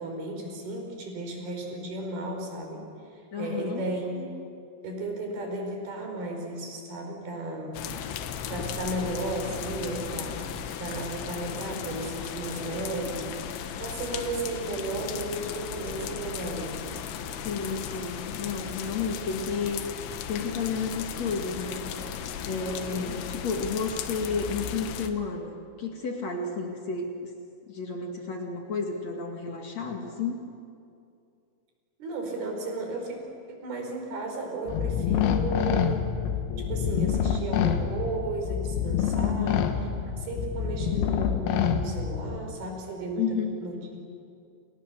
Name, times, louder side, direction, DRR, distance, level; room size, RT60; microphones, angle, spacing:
voice 1, 0.0-2.8 3.1-4.3 4.8-7.8 8.5-13.3 13.8-16.8 22.6-23.1 32.0-33.2 33.5-36.0 36.7-39.7 40.2-44.0, right 2 dB, 50° right, 2 dB, 6.3 m, -34 dB
voice 2, 3.3-3.8 17.4-19.8 20.3-21.9 22.4-27.3 27.7-30.4 39.2-39.7 43.2-43.5, left 5 dB, 50° left, 2 dB, 2.3 m, -31 dB
sound 1, 7.7-25.1, left 8 dB, 75° left, 3.5 m, -36 dB
sound 2, 34.7-42.4, left 8 dB, 90° left, 4.1 m, -27 dB
30.0 x 28.5 x 6.9 m, 2.5 s
omnidirectional pair, 5.8 m